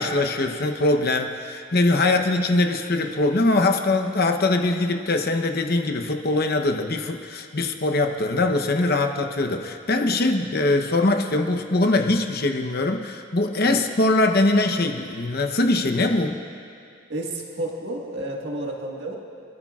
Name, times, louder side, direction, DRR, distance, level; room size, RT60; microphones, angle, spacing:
voice 1, 0.0-16.4, left 2 dB, 50° left, 5 dB, 0.9 m, -22 dB
voice 2, 17.1-19.2, right 1 dB, 55° right, -1 dB, 1.7 m, -31 dB
26.5 x 13.0 x 2.4 m, 2.4 s
head